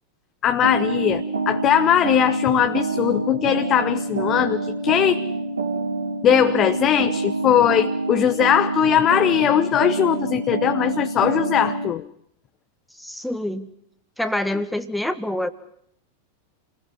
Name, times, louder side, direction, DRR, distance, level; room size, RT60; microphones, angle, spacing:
voice 1, 0.4-5.2 6.2-12.0, left 10 dB, 30° left, 10 dB, 0.8 m, -20 dB
sound 1, 0.6-11.9, right 3 dB, 75° right, 2.4 m, -26 dB
voice 2, 12.9-13.7 14.2-15.5, left 1 dB, ahead, 9 dB, 1.6 m, -26 dB
29.0 x 20.0 x 5.7 m, 0.71 s
figure-of-eight pair, 90°, 0 cm